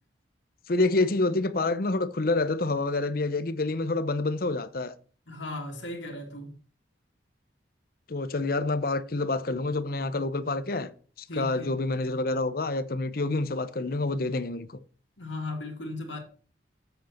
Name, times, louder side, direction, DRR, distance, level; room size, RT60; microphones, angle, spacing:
voice 1, 0.7-4.9 8.1-10.9 11.4-14.8, left 2 dB, 50° left, 0.7 m, -27 dB
voice 2, 5.3-6.6 11.3-11.7 15.2-16.2, left 2 dB, 90° left, 2.6 m, -36 dB
8.0 x 7.8 x 4.3 m
head